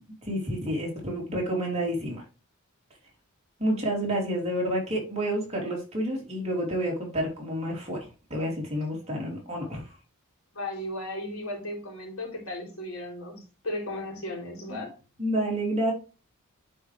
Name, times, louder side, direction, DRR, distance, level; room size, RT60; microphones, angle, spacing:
voice 1, 0.2-2.2 3.6-8.0 8.3-9.9 14.7-14.8 15.2-15.9, right 1 dB, 30° right, -2 dB, 3.0 m, -29 dB
voice 2, 10.5-14.9, left 1 dB, 80° left, 0 dB, 3.7 m, -35 dB
9.8 x 4.6 x 3.3 m, 0.32 s
head